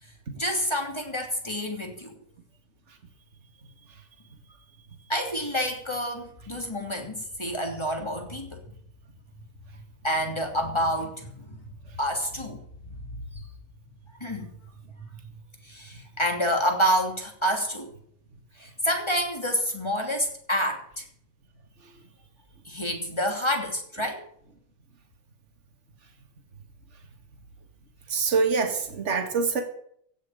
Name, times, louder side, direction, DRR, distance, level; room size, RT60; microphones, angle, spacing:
voice 1, 0.0-2.2 5.1-8.7 10.0-11.7 12.0-12.6 13.0-13.5 14.1-14.5 15.6-17.9 18.5-21.1 22.6-24.2, equal, 15° left, 2 dB, 2.8 m, -28 dB
voice 2, 28.1-29.6, right 5 dB, 35° right, 5 dB, 2.3 m, -25 dB
16.0 x 6.6 x 9.1 m, 0.64 s
omnidirectional pair, 2.3 m